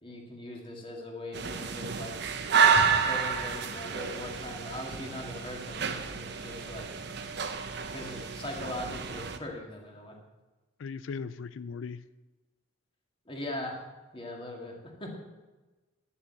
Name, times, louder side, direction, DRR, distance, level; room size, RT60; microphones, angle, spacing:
voice 1, 0.0-2.2 3.0-6.9 7.9-10.2 13.3-13.8 14.1-15.2, left 1 dB, 25° left, 0 dB, 2.2 m, -40 dB
sound 1, 1.3-9.4, right 6 dB, 60° right, 0.9 m, -29 dB
voice 2, 10.8-12.0, left 5 dB, 75° left, 15 dB, 0.4 m, -38 dB
11.0 x 7.2 x 7.7 m, 1.2 s
head